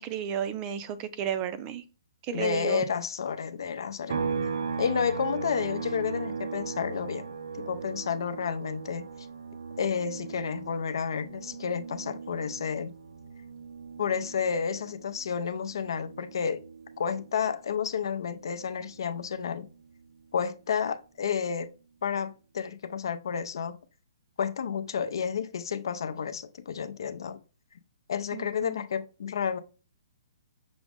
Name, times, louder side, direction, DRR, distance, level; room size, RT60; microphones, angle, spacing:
voice 1, 0.0-1.8 2.2-2.9 28.3-28.8, right 9 dB, 25° right, 0.4 m, -33 dB
voice 2, 2.3-4.2 4.8-7.3 7.5-9.3 9.8-12.9 14.0-16.6 17.0-19.7 20.3-21.7 22.0-23.8 24.4-27.4 28.1-29.6, left 7 dB, 75° left, 0.5 m, -31 dB
sound 1, 4.1-17.6 18.0-20.2, right 5 dB, 80° right, 0.6 m, -38 dB
6.0 x 2.0 x 3.5 m
hypercardioid pair, 155°, 2 cm